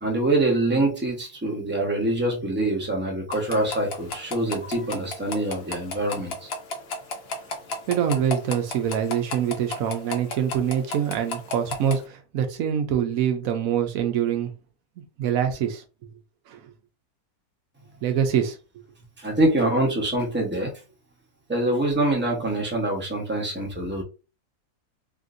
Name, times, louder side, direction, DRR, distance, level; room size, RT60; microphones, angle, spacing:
voice 1, 0.0-6.5 19.2-20.7 21.5-24.0, right 1 dB, 10° right, 0.6 m, -25 dB
sound 1, 3.3-12.0, left 2 dB, 60° left, 0.7 m, -35 dB
voice 2, 7.9-14.5 15.2-15.8 16.5-16.6 18.0-18.6, right 9 dB, 70° right, 1.0 m, -25 dB
3.5 x 2.5 x 2.5 m
omnidirectional pair, 1.6 m